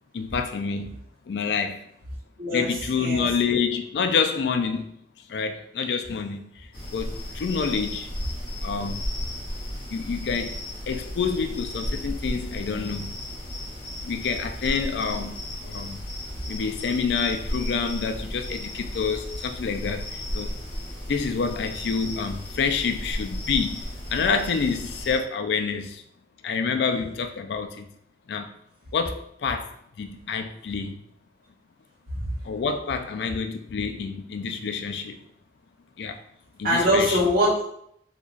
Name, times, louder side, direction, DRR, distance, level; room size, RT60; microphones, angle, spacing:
voice 1, 0.1-1.0 1.3-1.9 2.5-4.9 5.3-8.1 8.6-9.0 9.9-10.6 10.9-13.1 14.0-15.4 15.6-16.0 16.5-20.5 21.1-23.8 24.1-26.0 26.4-27.9 28.3-28.5 28.9-29.7 30.0-31.0 32.4-35.2 36.0-36.2 36.6-37.2, left 5 dB, 75° left, 6 dB, 0.4 m, -27 dB
sound 1, 6.7-25.2, left 1 dB, 30° left, 1.1 m, -34 dB
voice 2, 36.6-37.7, equal, 55° right, -6 dB, 1.3 m, -22 dB
3.8 x 2.9 x 2.4 m, 0.71 s
head